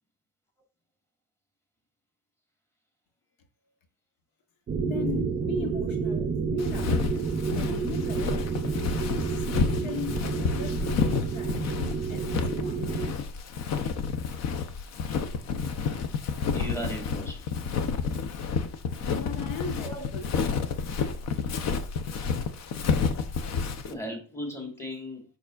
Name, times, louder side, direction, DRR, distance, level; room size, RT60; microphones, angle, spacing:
sound 1, 4.7-13.1, right 5 dB, 25° right, 0.4 m, -30 dB
voice 1, 4.8-8.6 9.1-12.9 19.1-20.4, left 5 dB, 90° left, 1.2 m, -39 dB
Walk footsteps, 6.6-23.9, left 5 dB, 50° left, 0.7 m, -30 dB
voice 2, 16.5-17.4 19.8-20.1 23.9-25.2, equal, 10° left, 1.7 m, -36 dB
6.9 x 5.5 x 2.4 m
cardioid pair, 155°, 34 cm